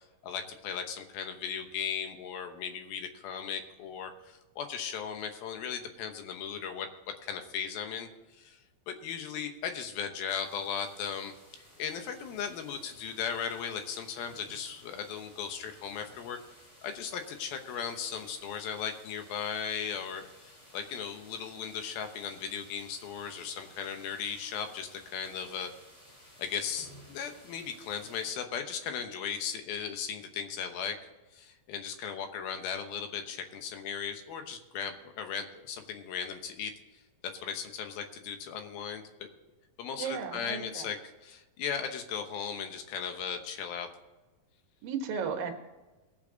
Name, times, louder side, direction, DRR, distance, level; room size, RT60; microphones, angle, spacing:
voice 1, 0.2-6.9 7.2-8.1 8.4-8.6 8.9-16.4 16.8-20.3 20.7-25.7 26.4-31.0 31.3-36.7 37.2-39.0 39.8-41.0 41.2-43.9, left 7 dB, 75° left, 7 dB, 2.8 m, -37 dB
sound 1, 10.3-28.3, equal, 15° left, 3.2 m, -56 dB
voice 2, 40.0-40.9 44.8-45.5, right 6 dB, 70° right, 4 dB, 2.9 m, -34 dB
19.5 x 7.1 x 3.9 m, 1.1 s
omnidirectional pair, 4.5 m